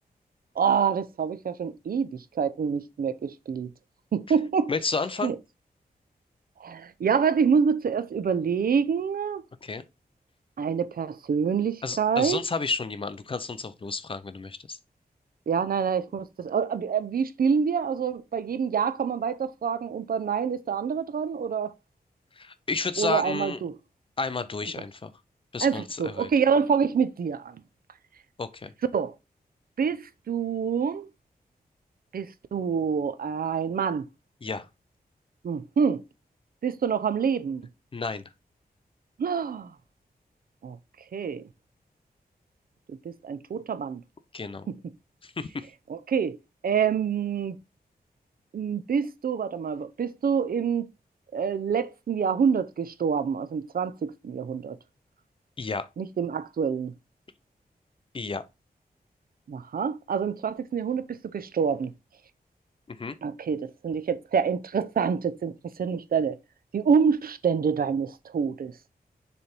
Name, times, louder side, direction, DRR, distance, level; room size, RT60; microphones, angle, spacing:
voice 1, 0.6-3.7 4.1-4.7 5.2-5.4 6.6-9.4 10.6-12.4 15.5-21.7 23.0-23.8 25.6-27.6 28.9-29.1 29.8-31.1 32.1-34.1 35.4-36.0 36.6-37.7 39.2-39.7 40.6-40.8 41.1-41.5 42.9-44.0 44.7-44.8 45.9-46.4 46.6-47.6 48.5-50.9 51.3-54.8 56.0-56.9 59.5-61.9 63.2-65.5 65.8-66.4 66.7-68.7, right 6 dB, 65° right, 0.6 m, -26 dB
voice 2, 4.7-5.3 9.6-9.8 11.8-14.8 22.4-23.6 24.2-25.1 25.5-26.3 28.4-28.7 34.4-34.7 37.9-38.3 44.3-44.7 45.2-45.7 55.6-55.9 58.1-58.5 62.9-63.2, left 4 dB, 35° left, 0.5 m, -31 dB
6.8 x 3.3 x 4.4 m
wide cardioid pair, 150°, 16 cm